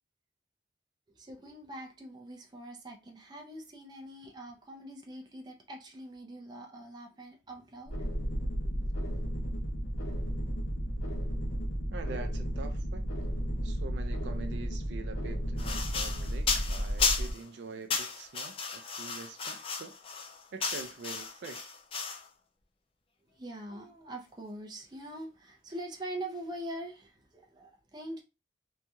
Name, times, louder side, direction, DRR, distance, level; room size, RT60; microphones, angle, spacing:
voice 1, 1.1-7.9 8.6-8.9 9.2-9.3 23.3-28.2, right 1 dB, 25° right, 0.5 m, -43 dB
sound 1, 7.9-17.3, equal, 90° left, 0.9 m, -33 dB
voice 2, 11.9-13.1 13.6-20.0 20.5-21.7, right 4 dB, 75° right, 0.4 m, -45 dB
sound 2, 15.6-17.4 17.9-22.3, left 5 dB, 30° left, 0.4 m, -34 dB
3.0 x 2.7 x 2.2 m
head